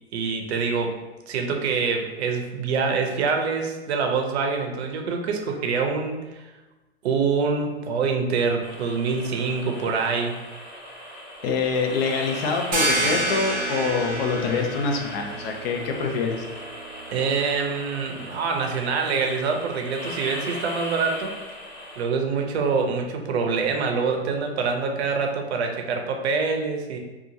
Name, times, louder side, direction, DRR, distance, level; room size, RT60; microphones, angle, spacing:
voice 1, 0.1-1.0 1.3-6.4 7.0-10.4 17.1-21.3 22.0-27.0, right 5 dB, 70° right, 3 dB, 0.6 m, -25 dB
sound 1, 8.6-22.0, equal, 15° left, 1.1 m, -39 dB
voice 2, 11.4-16.4, left 5 dB, 60° left, 2 dB, 0.6 m, -25 dB
sound 2, 12.7-18.1, right 2 dB, 25° right, 0.6 m, -29 dB
2.8 x 2.4 x 2.6 m, 1.1 s
hypercardioid pair, 115°, 34 cm